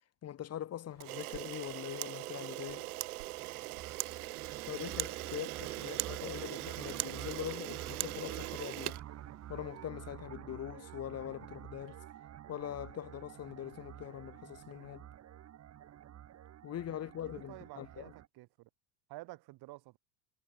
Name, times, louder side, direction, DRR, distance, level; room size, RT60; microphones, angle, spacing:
voice 1, 0.2-2.9 4.7-9.0 9.5-12.0 12.5-15.1 16.6-18.1, left 11 dB, 35° left, 1.4 m, -42 dB
Camera, 1.0-9.7, right 19 dB, 85° right, 4.4 m, -40 dB
sound 1, 2.7-18.3, right 11 dB, 35° right, 1.9 m, -49 dB
voice 2, 5.3-6.4 16.9-18.7 19.1-20.0, right 20 dB, 60° right, 7.0 m, -52 dB
supercardioid pair, 110°, 44 cm